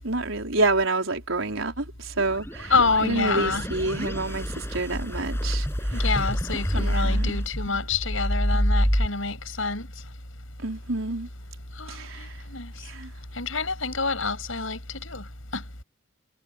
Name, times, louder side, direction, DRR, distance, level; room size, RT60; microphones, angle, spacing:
voice 1, 0.0-2.7 3.0-5.7 5.9-6.1 6.7-7.4 10.6-11.3 11.9-12.3 12.8-13.1, right 2 dB, 75° right, 4.5 m, -28 dB
sound 1, 2.2-9.1, equal, 10° left, 6.6 m, -27 dB
voice 2, 2.7-3.6 5.9-9.9 11.8-12.7 13.4-15.2 15.5-15.6, left 4 dB, 75° left, 6.6 m, -27 dB
head